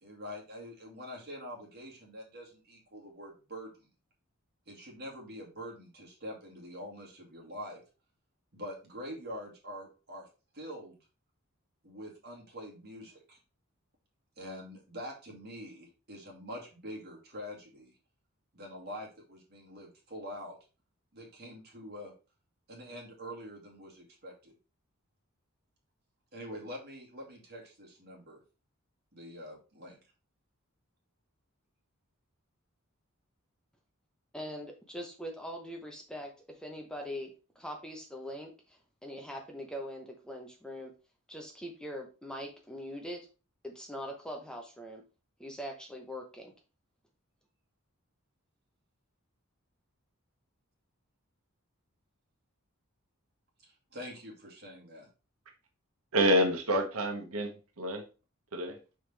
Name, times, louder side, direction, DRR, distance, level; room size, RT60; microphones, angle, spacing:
voice 1, 0.0-3.9 4.7-7.8 8.5-10.2 10.5-11.0 11.8-13.4 14.4-17.9 18.5-20.6 21.1-22.1 22.7-24.5 26.3-28.4 29.1-30.0 53.6-55.1, equal, 50° right, -1 dB, 2.3 m, -45 dB
voice 2, 34.3-37.3 37.6-40.9 41.3-43.2 43.6-45.0 45.4-46.5, equal, 5° left, 2 dB, 0.8 m, -42 dB
voice 3, 56.1-58.0 58.5-58.8, equal, 85° right, 4 dB, 1.1 m, -28 dB
5.6 x 5.0 x 3.3 m, 0.32 s
head